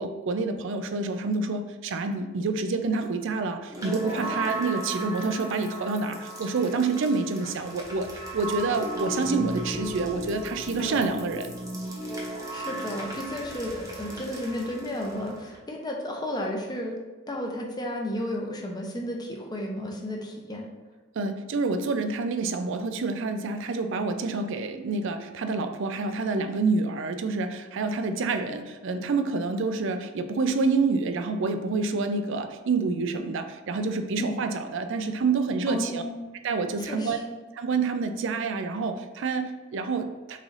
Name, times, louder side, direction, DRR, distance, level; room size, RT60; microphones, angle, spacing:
voice 1, 0.0-11.5 21.2-36.0 36.4-37.2 37.5-40.4, right 4 dB, 65° right, 8 dB, 0.4 m, -28 dB
sound 1, 3.7-15.6, right 1 dB, 15° right, 0.8 m, -36 dB
voice 2, 10.8-11.1 12.5-17.0 17.3-20.7 34.2-34.4 35.7-36.3 36.8-37.4, left 1 dB, 20° left, 0 dB, 0.6 m, -33 dB
3.7 x 3.2 x 3.9 m, 1.2 s
head